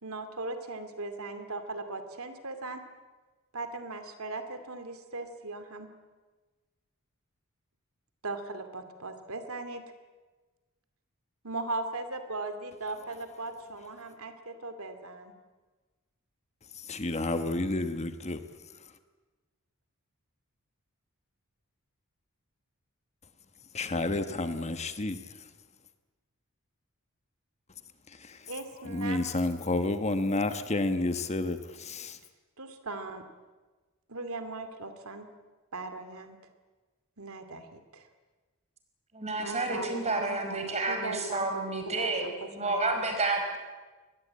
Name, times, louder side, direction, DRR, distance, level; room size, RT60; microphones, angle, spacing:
voice 1, 0.0-2.8 3.5-5.9 8.2-9.8 11.4-15.3 28.5-29.2 32.6-33.3 34.1-35.3 35.7-36.4 37.2-38.1 39.4-42.8, right 2 dB, 75° right, 2.5 m, -38 dB
voice 2, 16.7-18.4 23.7-25.4 28.1-28.5 28.8-32.2, left 2 dB, 30° left, 1.2 m, -30 dB
voice 3, 39.1-43.6, right 3 dB, 30° right, 5.2 m, -30 dB
24.5 x 20.5 x 8.8 m
head